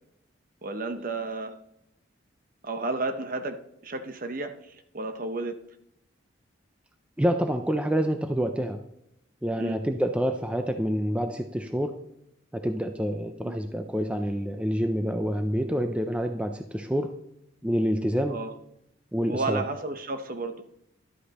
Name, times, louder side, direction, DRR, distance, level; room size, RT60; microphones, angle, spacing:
voice 1, 0.6-1.6 2.6-5.6 9.6-9.8 13.4-13.6 18.3-18.5 19.3-20.6, right 3 dB, 45° right, 8 dB, 0.8 m, -32 dB
voice 2, 7.2-8.8 9.4-11.9 12.5-17.2 17.6-18.4 19.1-19.6, equal, 5° right, 6 dB, 0.4 m, -27 dB
11.5 x 8.2 x 2.9 m, 0.82 s
head